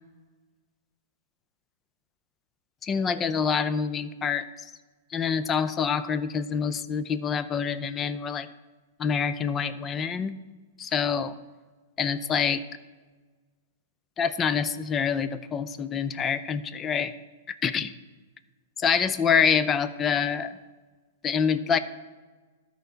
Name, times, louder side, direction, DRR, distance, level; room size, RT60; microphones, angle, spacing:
voice 1, 2.8-4.5 5.1-8.5 9.0-10.3 10.8-11.3 12.0-12.6 14.2-17.1 17.5-17.9 18.8-20.6 21.2-21.8, left 6 dB, 25° left, 13 dB, 0.5 m, -26 dB
13.5 x 4.6 x 4.0 m, 1.3 s
hypercardioid pair, 115°, 0 cm